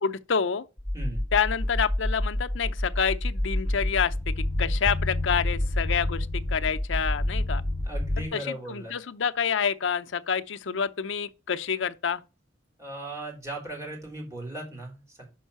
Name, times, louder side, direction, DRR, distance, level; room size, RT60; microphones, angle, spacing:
voice 1, 0.0-0.6 1.3-4.1 4.6-7.6 8.3-12.2, left 6 dB, 70° left, 0.6 m, -28 dB
sound 1, 0.8-8.3, left 1 dB, 5° left, 2.6 m, -28 dB
voice 2, 7.8-8.9 12.8-15.3, right 1 dB, 15° right, 3.4 m, -37 dB
5.5 x 5.4 x 6.4 m
head